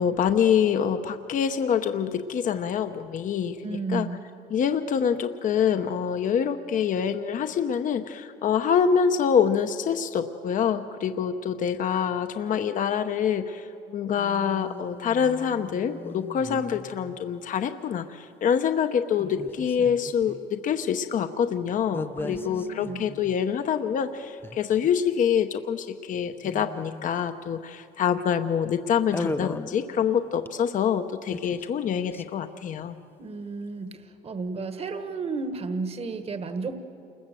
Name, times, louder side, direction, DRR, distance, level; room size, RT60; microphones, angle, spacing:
voice 1, 0.0-4.1 4.5-33.0, left 7 dB, 50° left, 8 dB, 0.9 m, -26 dB
voice 2, 3.6-4.2 22.1-23.0 33.2-36.8, right 4 dB, 35° right, 9 dB, 1.5 m, -33 dB
sound 1, 14.2-17.4 19.2-20.4 21.9-23.5 24.1-24.2 24.4-24.9 26.3-27.3 29.1-30.8 31.0-32.4, left 3 dB, 15° left, 0.6 m, -38 dB
28.5 x 21.0 x 7.7 m, 2.7 s
cardioid pair, 110°, 17 cm